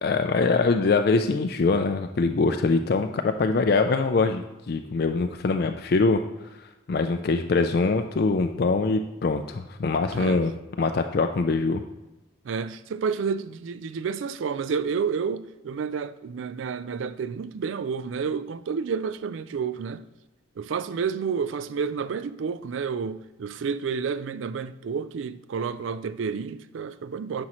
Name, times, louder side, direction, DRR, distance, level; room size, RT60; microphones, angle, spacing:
voice 1, 0.0-6.2 6.9-10.5 10.8-11.8, left 3 dB, 50° left, 0.4 m, -23 dB
voice 2, 10.1-10.4 12.4-20.0 20.6-27.5, right 6 dB, 80° right, 0.4 m, -30 dB
9.6 x 6.3 x 3.0 m
head